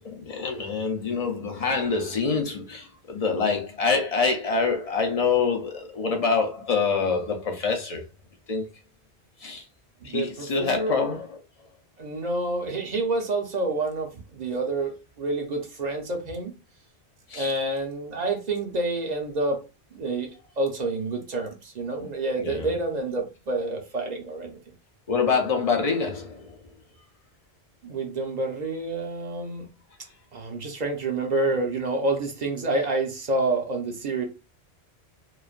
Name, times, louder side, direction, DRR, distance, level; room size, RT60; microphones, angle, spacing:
voice 1, 0.0-8.0 8.5-8.7 9.4-9.6 10.0-11.3 17.3-17.5 22.4-22.7 25.1-26.6, left 4 dB, 50° left, 0.5 m, -26 dB
voice 2, 10.0-10.9 12.0-16.6 17.3-19.6 19.9-24.6 27.8-29.7 30.3-34.3, right 2 dB, 50° right, 0.6 m, -28 dB
3.1 x 2.1 x 2.4 m
omnidirectional pair, 1.1 m